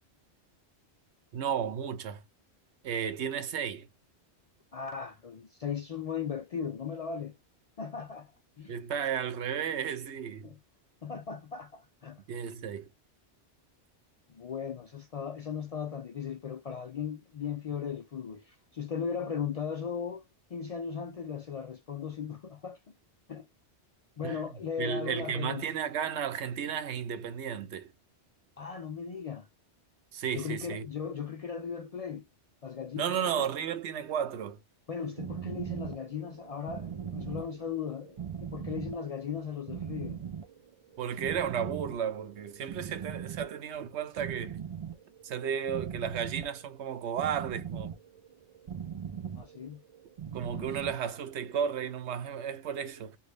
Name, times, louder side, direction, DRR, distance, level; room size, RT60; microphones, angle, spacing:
voice 1, 1.3-2.2 2.8-3.9 8.7-10.5 12.3-12.9 24.2-24.4 24.8-27.9 30.1-30.8 33.0-34.6 41.0-44.6 45.2-47.9 50.3-53.2, right 8 dB, 75° right, 1.0 m, -33 dB
voice 2, 4.7-7.4 7.8-8.3 8.6-8.7 10.4-10.6 11.0-12.2 14.3-20.2 20.5-22.8 23.3-23.5 24.2-25.6 28.6-29.5 30.3-32.3 32.6-33.3 34.9-40.2 49.4-49.8 50.5-50.7, left 7 dB, 65° left, 0.3 m, -37 dB
sound 1, 34.9-51.6, right 8 dB, 45° right, 0.4 m, -40 dB
3.0 x 2.6 x 3.2 m
omnidirectional pair, 1.2 m